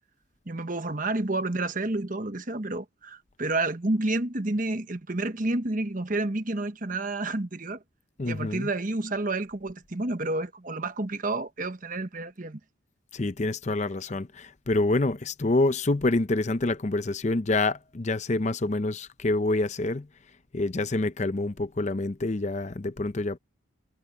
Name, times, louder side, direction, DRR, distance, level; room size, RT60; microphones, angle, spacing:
voice 1, 0.5-7.8 8.2-12.6, right 2 dB, 40° right, 1.2 m, -30 dB
voice 2, 8.2-8.7 13.1-20.1 20.5-23.4, left 2 dB, 35° left, 0.6 m, -27 dB
head